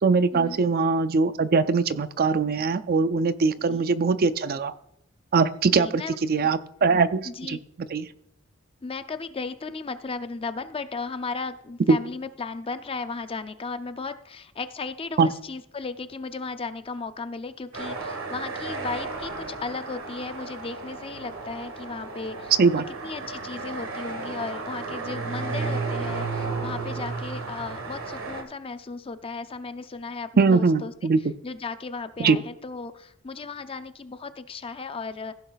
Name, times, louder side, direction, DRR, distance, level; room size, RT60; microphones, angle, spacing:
voice 1, 0.0-4.7 5.3-7.6 7.9-8.1 11.9-12.0 15.2-15.3 22.6-22.8 30.4-31.2 32.2-32.4, right 4 dB, 45° right, 0.4 m, -21 dB
voice 2, 5.7-6.2 7.3-7.6 8.8-22.5 23.0-30.9 31.4-35.3, left 4 dB, 25° left, 0.5 m, -35 dB
sound 1, 17.7-28.4, right 3 dB, 80° right, 1.5 m, -33 dB
15.0 x 5.4 x 4.0 m
head